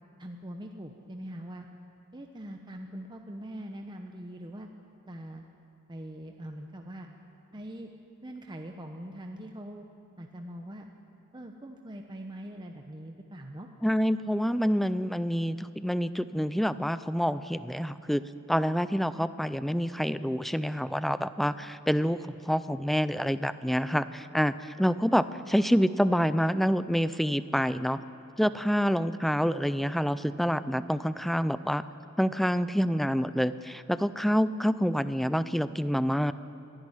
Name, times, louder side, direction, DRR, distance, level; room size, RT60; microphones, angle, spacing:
voice 1, 0.2-1.7 2.1-4.7 5.1-5.5 5.9-7.1 7.5-7.9 8.2-9.9 10.2-10.9 11.3-13.7, right 1 dB, 20° right, 3 dB, 0.9 m, -42 dB
voice 2, 13.8-18.2 18.5-22.2 22.5-28.0 28.4-31.8 32.2-36.3, equal, ahead, 14 dB, 0.4 m, -27 dB
24.5 x 11.0 x 10.0 m, 2.6 s
head